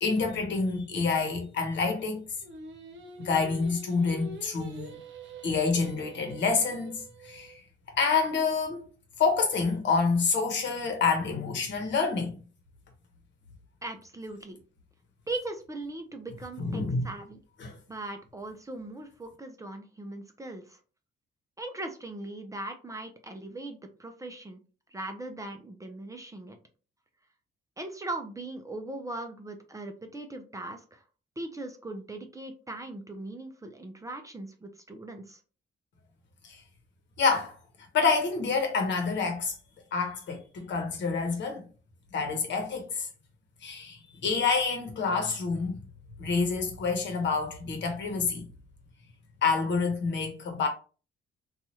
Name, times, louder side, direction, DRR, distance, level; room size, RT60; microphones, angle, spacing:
voice 1, 0.0-2.2 3.2-5.0 5.4-7.5 8.0-8.9 9.2-12.4 16.6-17.1 17.6-17.7 36.4-36.6 37.2-37.5 37.9-39.5 39.9-41.6 42.1-43.1 43.6-45.8 46.2-48.4 49.4-50.7, left 4 dB, 65° left, 0.9 m, -27 dB
Singing, 2.4-7.6, right 2 dB, 65° right, 0.8 m, -45 dB
voice 2, 13.8-14.6 15.3-17.4 17.9-20.8 21.6-24.6 24.9-26.6 27.8-31.0 31.4-35.4, right 2 dB, 15° right, 0.5 m, -39 dB
2.9 x 2.3 x 2.8 m
cardioid pair, 90°, 20 cm